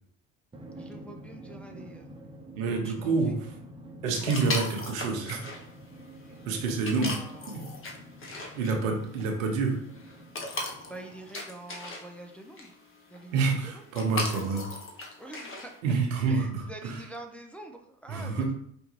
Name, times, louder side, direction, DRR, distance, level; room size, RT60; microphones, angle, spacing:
Drum, 0.5-11.6, right 1 dB, 15° right, 0.9 m, -48 dB
voice 1, 0.7-2.1 2.8-3.3 7.0-7.5 10.9-12.7 13.1-13.8 15.2-15.7 16.3-18.5, right 2 dB, 5° left, 2 dB, 0.5 m, -45 dB
voice 2, 2.5-3.5 4.0-5.4 6.5-7.2 7.5-7.6 8.6-9.8 13.3-14.6 15.8-17.0 18.1-18.5, right 4 dB, 80° right, 2 dB, 0.9 m, -28 dB
sound 1, 4.1-15.8, left 2 dB, 30° left, 1.1 m, -39 dB
5.1 x 2.3 x 3.1 m, 0.68 s
hypercardioid pair, 70°, 39 cm